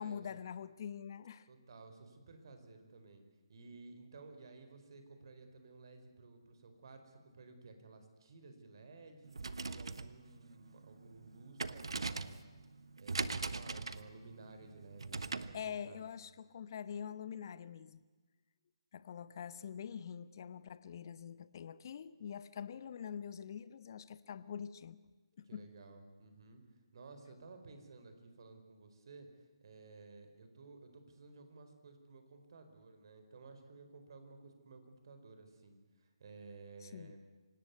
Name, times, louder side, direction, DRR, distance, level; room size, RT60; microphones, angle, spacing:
voice 1, 0.0-1.5 15.5-18.0 18.9-25.0 25.4-25.7 36.8-37.2, left 8 dB, 45° left, 15 dB, 1.0 m, -45 dB
voice 2, 1.5-3.2 3.5-9.4 9.7-12.5 13.0-16.0 25.4-26.6 26.9-37.2, right 3 dB, 55° right, 7 dB, 4.7 m, -55 dB
sound 1, 9.2-15.6, right 3 dB, 75° right, 1.3 m, -41 dB
25.5 x 18.0 x 9.6 m, 1.3 s
figure-of-eight pair, 145°, 3 cm